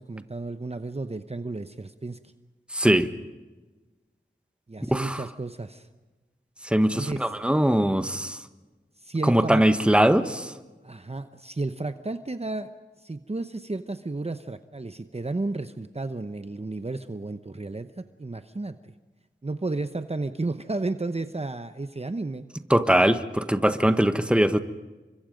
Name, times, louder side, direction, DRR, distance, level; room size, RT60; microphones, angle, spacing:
voice 1, 0.0-2.2 4.7-5.9 6.9-7.3 9.0-9.6 10.8-12.7 13.0-18.9 19.4-22.5, right 2 dB, 30° right, 9 dB, 0.9 m, -32 dB
voice 2, 2.7-3.1 4.9-5.2 6.6-8.4 9.2-10.5 22.7-24.6, right 1 dB, 5° right, 10 dB, 1.3 m, -21 dB
30.0 x 24.5 x 5.2 m, 1.2 s
wide cardioid pair, 60°, 20 cm